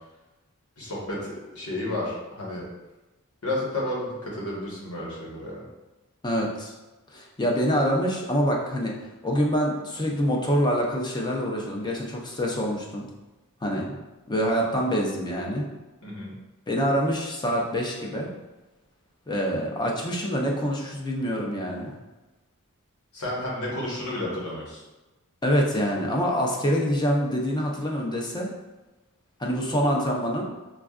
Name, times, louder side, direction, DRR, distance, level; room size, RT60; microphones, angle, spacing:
voice 1, 0.8-2.6 3.4-5.6 16.0-16.3 23.1-24.8, left 1 dB, 85° left, -5 dB, 1.2 m, -31 dB
voice 2, 6.2-6.7 7.1-13.1 13.6-14.0 14.3-15.7 16.7-18.3 19.3-21.9 25.4-28.5 29.4-30.5, equal, 20° left, -1 dB, 0.5 m, -26 dB
5.0 x 2.4 x 2.4 m, 1.1 s
head